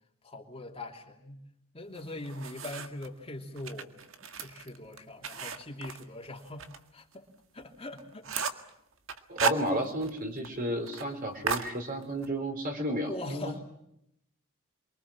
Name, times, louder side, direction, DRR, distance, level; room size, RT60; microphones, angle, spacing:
voice 1, 0.2-1.4 1.7-3.9 4.2-6.6 6.9-7.3 7.5-8.6 13.0-13.6, left 1 dB, 25° left, 1 dB, 2.9 m, -42 dB
sound 1, 1.9-3.1 3.6-6.8 7.1-7.2 7.6-7.7 8.0-8.7 9.1-10.2 10.4-10.5 10.8-11.1 11.5-12.3, right 5 dB, 60° right, 1.8 m, -34 dB
voice 2, 9.3-13.6, equal, 40° right, 4 dB, 4.3 m, -32 dB
29.0 x 23.5 x 7.5 m, 0.79 s
head